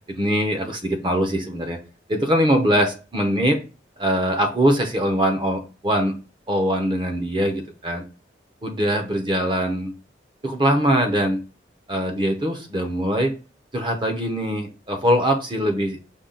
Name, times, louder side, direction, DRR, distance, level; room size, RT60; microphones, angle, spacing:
voice 1, 0.1-1.8 2.1-3.6 4.0-6.2 6.5-8.0 8.6-9.9 10.4-11.4 11.9-13.3 13.7-16.0, equal, 25° right, 4 dB, 0.7 m, -22 dB
5.4 x 2.3 x 3.8 m, 0.33 s
head